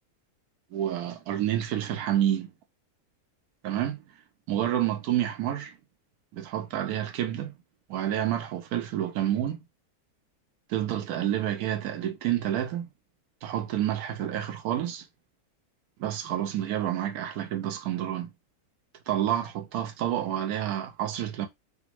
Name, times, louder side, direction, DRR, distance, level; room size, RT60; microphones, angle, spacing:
voice 1, 0.7-2.5 3.6-4.0 4.5-5.7 6.3-7.5 7.9-9.6 10.7-12.9 13.4-15.1 16.0-18.3 19.1-21.5, right 11 dB, 80° right, 1.1 m, -29 dB
3.5 x 2.1 x 2.9 m
omnidirectional pair, 1.6 m